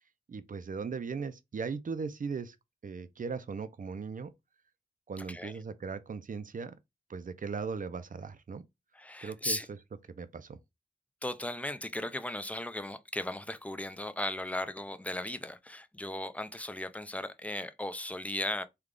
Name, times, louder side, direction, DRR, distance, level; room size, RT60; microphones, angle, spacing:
voice 1, 0.3-2.6 2.8-4.3 5.1-6.7 7.1-8.6 9.2-9.8 10.1-10.6, right 5 dB, 50° right, 0.5 m, -38 dB
voice 2, 8.9-9.7 11.2-18.6, left 1 dB, 10° left, 0.4 m, -36 dB
3.2 x 2.3 x 3.7 m
wide cardioid pair, 100°, 17 cm